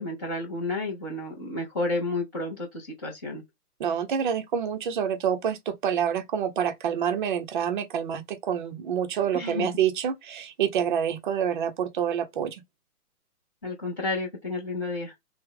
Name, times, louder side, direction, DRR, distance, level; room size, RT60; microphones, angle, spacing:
voice 1, 0.0-3.4 9.3-9.7 13.6-15.1, left 2 dB, 15° left, 0.5 m, -31 dB
voice 2, 3.8-12.6, right 8 dB, 35° right, 0.6 m, -27 dB
3.4 x 2.0 x 3.6 m
hypercardioid pair, 140°, 47 cm